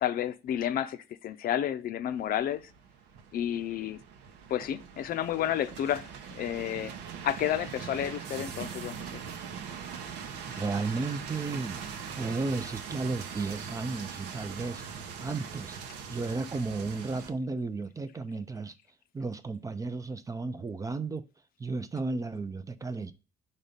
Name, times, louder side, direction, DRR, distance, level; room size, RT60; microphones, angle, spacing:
voice 1, 0.0-2.6 3.3-4.0 4.5-6.9 7.2-9.1, left 11 dB, 60° left, 0.6 m, -31 dB
sound 1, 2.1-17.3, right 7 dB, 85° right, 0.9 m, -41 dB
voice 2, 10.5-11.8 12.2-14.8 15.2-15.8 16.1-18.7 19.1-21.3 21.6-23.1, right 3 dB, 20° right, 0.5 m, -33 dB
5.5 x 4.1 x 5.0 m
cardioid pair, 110°, 17 cm